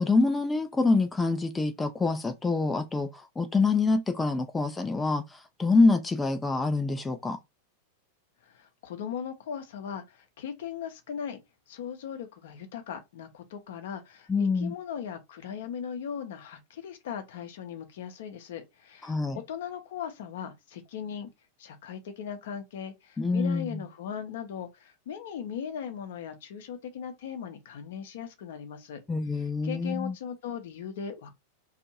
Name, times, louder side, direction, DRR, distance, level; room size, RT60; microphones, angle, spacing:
voice 1, 0.0-7.4 14.3-14.7 19.0-19.4 23.2-23.8 29.1-30.1, left 3 dB, 10° left, 0.3 m, -26 dB
voice 2, 8.4-11.4 11.7-21.3 21.6-29.0 29.6-31.4, left 8 dB, 55° left, 0.6 m, -38 dB
2.6 x 2.4 x 2.8 m
figure-of-eight pair, 90°, 0 cm